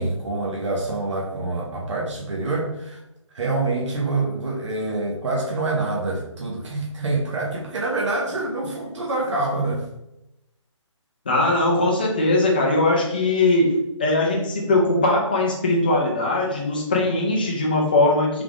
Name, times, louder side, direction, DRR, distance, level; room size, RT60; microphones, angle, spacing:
voice 1, 0.0-3.0 3.3-9.9, right 2 dB, 65° right, -2 dB, 0.8 m, -26 dB
voice 2, 11.3-18.4, left 2 dB, 20° left, -1 dB, 0.4 m, -20 dB
3.4 x 2.5 x 3.4 m, 0.87 s
hypercardioid pair, 170°, 16 cm